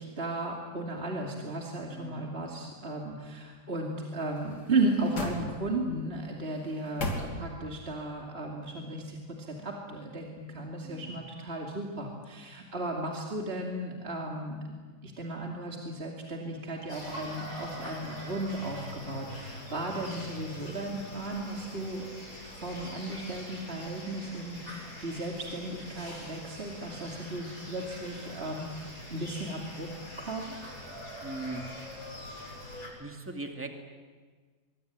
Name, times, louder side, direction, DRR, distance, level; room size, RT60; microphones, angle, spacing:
voice 1, 0.0-14.8 15.0-22.0 22.6-29.9 30.2-30.7, right 2 dB, 40° right, 0 dB, 2.9 m, -35 dB
voice 2, 1.9-2.3 10.8-11.1 31.2-31.6 33.0-33.7, right 2 dB, 10° right, 4 dB, 2.3 m, -39 dB
sound 1, 4.3-6.0 6.5-7.8 8.2-8.3, left 1 dB, 80° left, 3.6 m, -37 dB
sound 2, 16.9-32.9, left 1 dB, 55° left, 7.8 m, -44 dB
24.0 x 23.0 x 9.4 m, 1.5 s
omnidirectional pair, 1.7 m